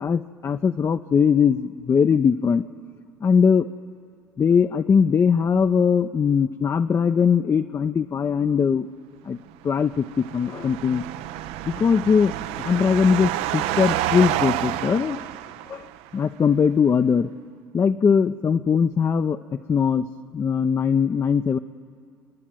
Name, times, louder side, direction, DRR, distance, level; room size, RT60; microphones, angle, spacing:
voice 1, 0.0-2.6 3.2-3.7 4.4-8.9 9.2-9.4 9.6-11.0 11.7-15.2 15.7-17.3 17.7-20.1 20.3-21.6, left 6 dB, 25° left, 7 dB, 0.6 m, -20 dB
sound 1, 9.8-16.1, right 13 dB, 60° right, 0.6 m, -29 dB
29.5 x 11.0 x 9.1 m, 2.2 s
figure-of-eight pair, 60°, 11 cm